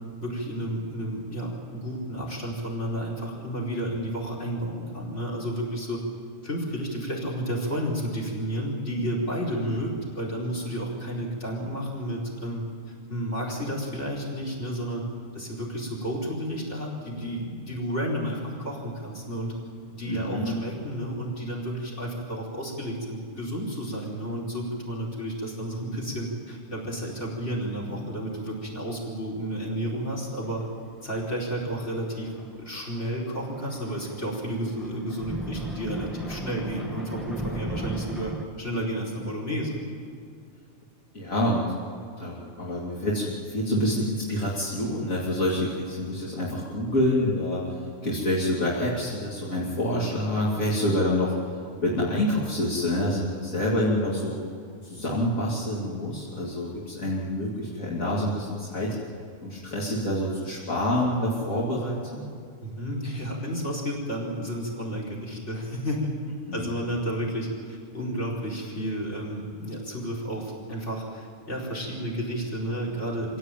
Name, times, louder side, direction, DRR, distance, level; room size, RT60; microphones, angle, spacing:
voice 1, 0.2-6.0 6.4-12.6 13.1-15.0 15.3-19.5 19.9-30.6 31.0-32.3 32.6-39.8 62.6-66.1 66.5-73.4, equal, 60° left, -1 dB, 5.0 m, -31 dB
voice 2, 20.1-20.5 41.1-41.6 42.2-51.3 51.8-54.4 54.8-59.0 59.4-62.3 66.5-66.7, left 1 dB, 80° left, -5 dB, 3.3 m, -27 dB
Thunder, 30.4-30.8 31.1-31.2 32.2-38.5, right 2 dB, ahead, 1.6 m, -37 dB
25.5 x 16.5 x 9.1 m, 2.2 s
omnidirectional pair, 1.4 m